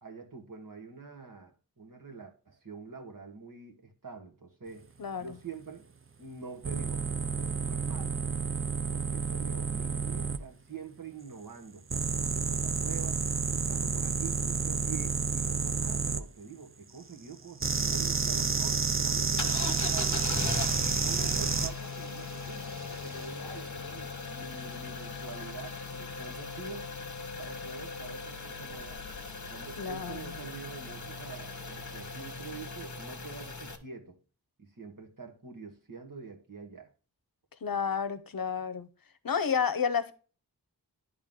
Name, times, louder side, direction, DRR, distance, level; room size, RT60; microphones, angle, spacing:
voice 1, 0.0-4.9 5.2-5.9 6.2-7.1 7.4-8.2 8.9-20.2 21.0-26.9 27.4-29.0 29.4-34.2 34.6-36.9, right 5 dB, 60° right, 1.6 m, -46 dB
sound 1, 6.6-10.4 11.9-16.2 17.6-21.7 22.9-23.2, right 5 dB, 35° right, 0.6 m, -30 dB
sound 2, 19.4-33.8, left 4 dB, 50° left, 1.0 m, -39 dB
voice 2, 29.8-30.2 37.6-38.9 39.2-40.1, left 6 dB, 65° left, 0.8 m, -30 dB
10.5 x 3.6 x 3.6 m
wide cardioid pair, 45°, 38 cm